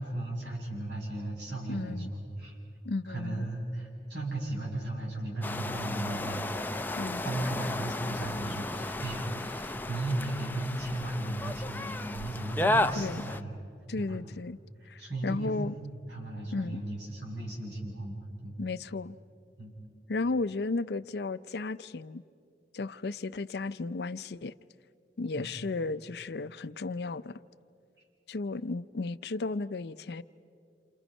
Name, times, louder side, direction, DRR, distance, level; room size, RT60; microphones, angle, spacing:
voice 1, 0.0-2.6 3.1-6.5 7.2-13.5 14.0-14.2 15.0-18.5 19.6-19.7 25.4-25.5, right 1 dB, 75° right, 7.4 m, -36 dB
voice 2, 1.7-2.1 2.8-3.5 6.9-7.5 12.9-13.3 13.9-14.6 14.9-15.7 16.5-16.8 18.6-19.2 20.1-22.2 22.7-24.5 25.2-27.4 28.3-30.2, left 3 dB, 65° left, 0.5 m, -34 dB
sound 1, 5.4-13.4, left 1 dB, 10° left, 0.5 m, -33 dB
29.0 x 28.5 x 5.4 m
head